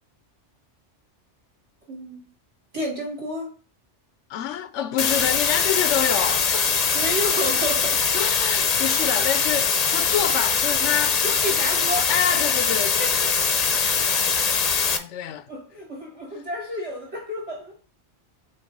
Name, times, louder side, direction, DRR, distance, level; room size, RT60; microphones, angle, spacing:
voice 1, 1.9-2.2 2.7-3.6 6.9-8.0 11.2-12.1 13.0-13.5 15.5-17.8, equal, 70° right, 3.6 m, -30 dB
voice 2, 4.3-6.8 8.1-11.4 12.1-13.1 13.7-13.9 14.9-15.5, left 10 dB, 85° left, 0.9 m, -27 dB
sound 1, 5.0-15.0, left 6 dB, 45° left, 0.6 m, -22 dB
7.7 x 2.8 x 5.3 m
omnidirectional pair, 1.2 m